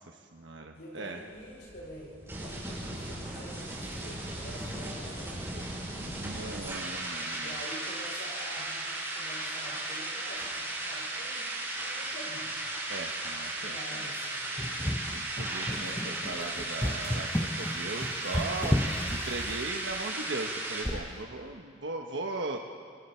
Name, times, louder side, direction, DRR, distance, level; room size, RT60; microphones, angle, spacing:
voice 1, 0.1-1.2 6.0-7.6 12.9-13.8 15.1-22.6, right 3 dB, 75° right, 2 dB, 1.2 m, -38 dB
voice 2, 0.7-6.7 7.4-11.4 11.8-12.5 13.6-14.7 15.8-16.8, equal, 60° left, -5 dB, 6.1 m, -47 dB
sound 1, 1.2-20.8, right 2 dB, 15° right, 6.5 m, -36 dB
sound 2, 14.6-19.9 20.8-21.2, left 1 dB, 10° left, 0.8 m, -32 dB
28.0 x 26.0 x 4.5 m, 2.2 s
head